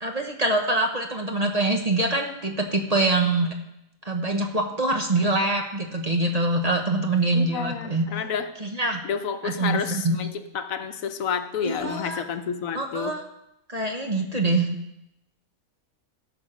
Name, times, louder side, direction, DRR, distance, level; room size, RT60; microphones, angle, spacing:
voice 1, 0.0-3.5 4.0-8.0 8.6-9.0 9.4-10.2 11.6-12.2 12.7-13.2 13.7-14.7, right 2 dB, 30° right, 3 dB, 1.0 m, -24 dB
voice 2, 7.3-8.5 9.0-10.3 10.5-13.1, left 7 dB, 75° left, 8 dB, 1.2 m, -30 dB
16.0 x 6.2 x 5.1 m, 0.85 s
omnidirectional pair, 1.4 m